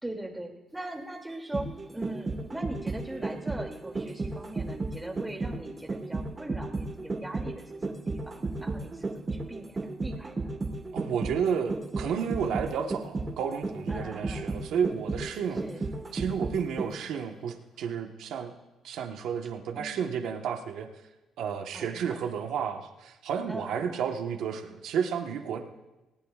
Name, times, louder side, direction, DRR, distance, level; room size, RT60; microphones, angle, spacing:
voice 1, 0.0-10.5 13.9-14.5 15.6-15.8 19.8-20.0 21.7-22.3 23.5-24.0, right 1 dB, 10° right, 1 dB, 2.7 m, -41 dB
sound 1, 1.3-17.2 17.5-17.6, right 3 dB, 30° right, 1.6 m, -33 dB
voice 2, 10.9-15.6 16.1-18.5 18.8-20.9 21.4-25.6, right 7 dB, 80° right, 4 dB, 1.3 m, -31 dB
19.0 x 17.5 x 2.5 m, 1.0 s
cardioid pair, 90°, 0 cm